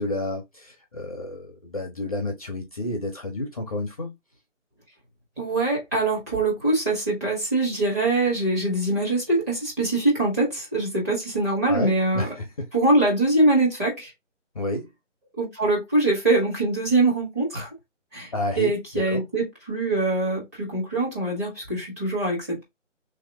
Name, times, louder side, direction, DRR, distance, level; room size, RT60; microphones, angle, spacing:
voice 1, 0.0-4.1 11.7-12.5 14.5-14.9 18.3-18.7 19.1-19.2, left 2 dB, 30° left, 0.6 m, -30 dB
voice 2, 5.4-12.3 12.7-14.1 15.4-17.7 18.1-18.3 18.6-22.6, right 2 dB, 15° right, 0.9 m, -23 dB
3.3 x 2.8 x 3.4 m
figure-of-eight pair, 155°, 37 cm